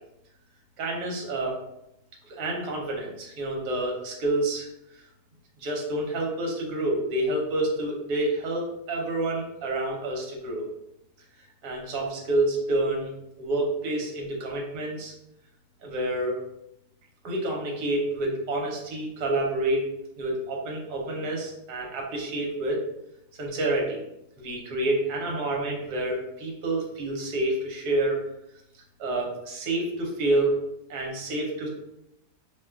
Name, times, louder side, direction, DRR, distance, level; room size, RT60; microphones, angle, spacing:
voice 1, 0.8-1.5 2.3-4.7 5.6-10.7 11.6-13.1 13.4-15.1 15.8-16.4 17.2-19.9 20.2-22.8 23.4-24.0 24.4-28.2 29.0-30.5 30.9-31.7, right 2 dB, 70° right, -1 dB, 1.3 m, -28 dB
2.8 x 2.3 x 3.4 m, 0.83 s
omnidirectional pair, 1.8 m